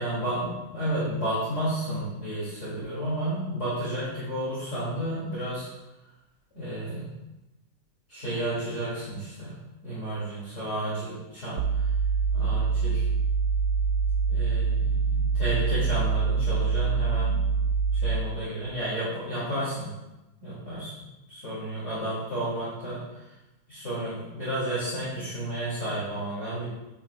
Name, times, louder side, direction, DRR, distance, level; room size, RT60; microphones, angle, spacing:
voice 1, 0.0-5.7 6.5-7.1 8.1-9.5 9.8-11.9 12.3-13.0 14.3-17.4 17.9-19.9 20.4-20.9 21.3-23.3 23.7-26.7, right 1 dB, 40° left, -10 dB, 3.1 m, -32 dB
sound 1, 11.6-18.4, right 5 dB, 65° right, 1.2 m, -25 dB
10.0 x 9.0 x 2.4 m, 1.0 s
omnidirectional pair, 2.0 m